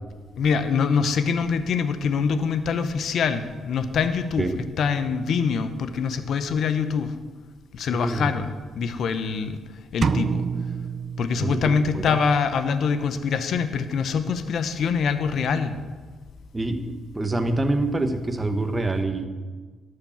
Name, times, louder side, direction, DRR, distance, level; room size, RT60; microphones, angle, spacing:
voice 1, 0.4-7.1 7.7-9.6 9.9-10.4 11.2-15.7, left 6 dB, 65° left, 10 dB, 0.7 m, -24 dB
voice 2, 7.9-8.3 11.4-11.6 11.9-12.2 16.5-19.3, right 2 dB, 20° right, 7 dB, 1.0 m, -26 dB
sound 1, 10.0-12.0, right 5 dB, 45° right, 0.4 m, -27 dB
12.0 x 4.9 x 7.2 m, 1.4 s
cardioid pair, 90°, 0 cm